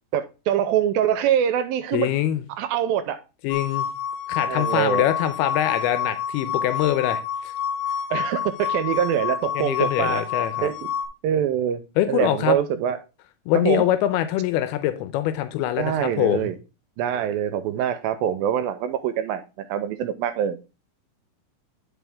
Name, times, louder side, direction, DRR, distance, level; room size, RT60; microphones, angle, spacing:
voice 1, 0.1-2.1 2.6-3.2 4.5-5.0 8.1-10.2 10.6-10.9 11.2-11.8 12.1-13.0 13.6-13.8 15.8-16.6 17.0-20.6, right 9 dB, 80° right, 2.3 m, -24 dB
voice 2, 1.9-2.4 3.4-3.9 4.3-7.2 9.6-10.7 12.0-12.6 13.5-16.5, left 12 dB, 90° left, 2.7 m, -23 dB
sound 1, 3.5-11.1, left 8 dB, 70° left, 2.7 m, -28 dB
10.0 x 4.9 x 3.5 m
omnidirectional pair, 4.4 m